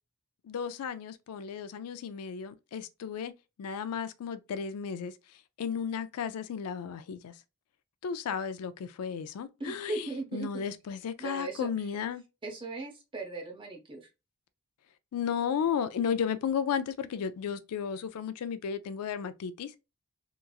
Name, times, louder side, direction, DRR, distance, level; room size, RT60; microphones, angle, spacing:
voice 1, 0.4-3.3 3.6-5.2 5.6-7.4 8.0-12.2 15.1-19.8, left 7 dB, 80° left, 0.3 m, -34 dB
voice 2, 9.6-10.6 11.2-11.7 12.4-14.1, right 2 dB, 20° right, 0.6 m, -37 dB
2.9 x 2.5 x 2.3 m
head